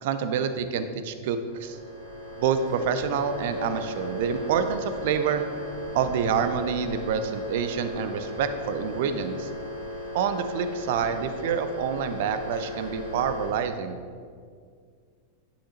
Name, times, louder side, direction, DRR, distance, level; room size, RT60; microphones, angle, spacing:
voice 1, 0.0-1.8 2.4-5.5 5.9-9.5 10.1-14.0, right 7 dB, 50° right, 10 dB, 0.6 m, -27 dB
sound 1, 1.3-13.5, equal, 85° left, 2.0 m, -36 dB
9.8 x 8.5 x 2.8 m, 2.1 s
figure-of-eight pair, 90°, 0 cm